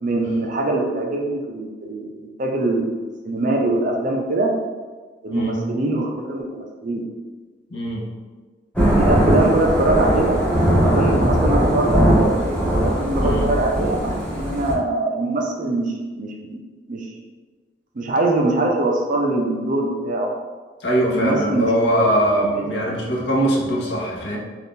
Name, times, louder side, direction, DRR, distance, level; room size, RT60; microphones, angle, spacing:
voice 1, 0.0-4.5 5.2-7.0 9.0-10.4 10.8-16.6 16.9-17.1 18.0-20.3 21.1-22.2 22.6-22.7, right 2 dB, 40° right, 1 dB, 0.4 m, -23 dB
voice 2, 7.7-8.1 13.2-13.5 20.8-24.4, equal, 65° left, -2 dB, 0.7 m, -21 dB
Thunder / Rain, 8.8-14.7, equal, 5° left, 0.7 m, -19 dB
2.6 x 2.4 x 3.5 m, 1.4 s
head